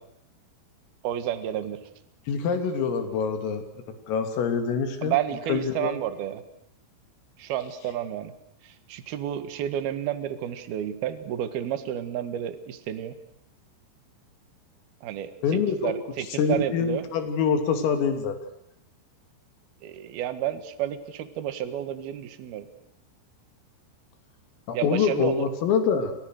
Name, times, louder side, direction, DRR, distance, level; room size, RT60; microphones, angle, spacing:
voice 1, 1.0-1.8 5.0-6.4 7.4-8.3 8.6-13.1 15.0-17.1 19.8-22.7 24.7-25.4, right 11 dB, 60° right, 10 dB, 3.3 m, -31 dB
voice 2, 2.3-3.6 4.1-5.2 5.5-6.0 15.4-15.9 16.4-18.4 24.7-26.1, left 6 dB, 85° left, 6 dB, 5.6 m, -25 dB
30.0 x 28.0 x 6.6 m, 0.72 s
omnidirectional pair, 5.8 m